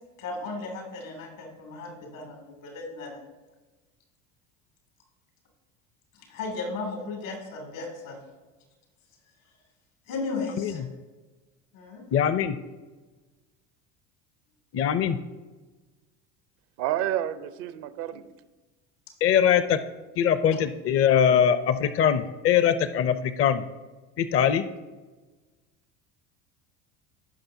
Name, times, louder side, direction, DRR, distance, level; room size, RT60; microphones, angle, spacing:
voice 1, 0.2-3.2 6.1-8.2 10.1-10.8 11.7-12.1, left 3 dB, 85° left, 1 dB, 2.7 m, -35 dB
voice 2, 12.1-12.6 14.7-15.2 19.2-19.8 20.2-23.6 24.2-24.6, left 8 dB, 35° left, 12 dB, 0.5 m, -22 dB
voice 3, 16.8-18.2, right 12 dB, 75° right, 13 dB, 0.7 m, -29 dB
16.5 x 5.6 x 2.7 m, 1.2 s
hypercardioid pair, 85°, 38 cm